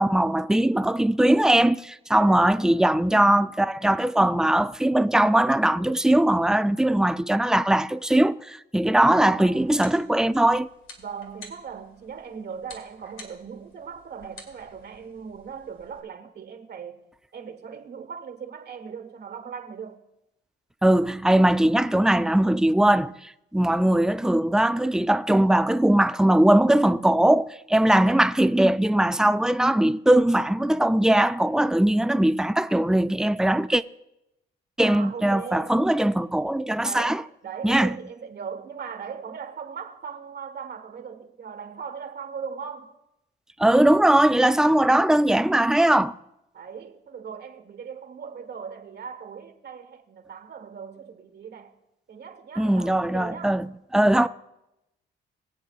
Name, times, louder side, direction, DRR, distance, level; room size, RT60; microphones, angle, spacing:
voice 1, 0.0-10.7 20.8-33.8 34.8-37.2 37.6-38.0 43.6-46.1 52.6-54.3, right 1 dB, 5° right, 0.3 m, -20 dB
voice 2, 2.1-2.7 9.1-9.7 11.0-17.0 17.3-20.0 34.8-35.8 36.8-43.0 46.5-51.7 52.1-53.6 54.1-54.3, right 6 dB, 55° right, 1.4 m, -39 dB
sound 1, 9.5-16.0, left 3 dB, 80° left, 2.1 m, -50 dB
22.0 x 8.2 x 2.4 m
cardioid pair, 90°, 20 cm